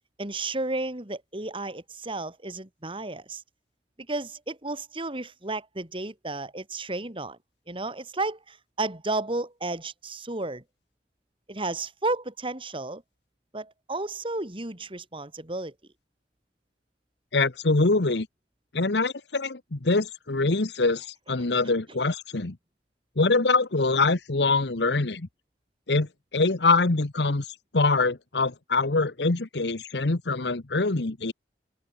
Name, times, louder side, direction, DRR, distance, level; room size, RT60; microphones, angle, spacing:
voice 1, 0.2-3.4 4.1-7.4 7.7-10.6 11.5-13.0 13.5-15.7, right 2 dB, 30° right, 2.8 m, -32 dB
voice 2, 17.3-18.3 18.7-22.6 23.2-25.3 25.9-27.5 27.7-31.3, left 3 dB, 70° left, 1.2 m, -24 dB
open air
head